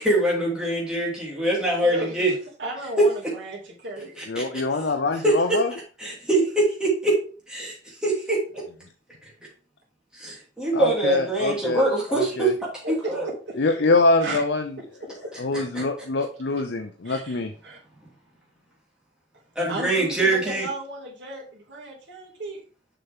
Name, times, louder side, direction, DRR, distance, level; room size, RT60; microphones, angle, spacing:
voice 1, 0.0-2.3 3.0-3.3 4.1-4.6 5.2-7.2 7.5-8.6 9.2-9.3 10.1-12.5 12.9-13.3 15.5-15.8 19.5-20.7, right 2 dB, 5° right, -5 dB, 3.0 m, -24 dB
voice 2, 1.8-2.1 2.6-4.1 12.8-13.1 13.5-13.6 14.2-14.4 15.0-15.3 17.0-17.8 19.7-22.6, right 1 dB, 80° right, -2 dB, 2.5 m, -34 dB
voice 3, 4.3-5.7 10.7-11.8 12.1-12.5 13.6-14.8 15.4-17.5, left 3 dB, 70° left, 5 dB, 0.6 m, -24 dB
6.9 x 5.8 x 3.6 m, 0.38 s
head